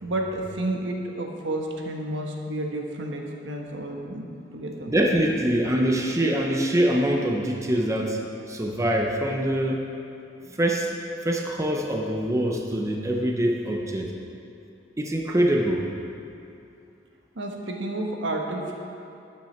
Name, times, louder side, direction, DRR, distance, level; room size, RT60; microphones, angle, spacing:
voice 1, 0.0-4.3 4.5-4.9 17.3-18.7, right 1 dB, 80° right, 1 dB, 1.3 m, -31 dB
voice 2, 4.9-8.2 8.5-9.8 10.5-10.9 11.2-14.1 15.0-15.9, right 1 dB, 15° right, 1 dB, 0.8 m, -24 dB
12.5 x 9.3 x 4.5 m, 2.7 s
head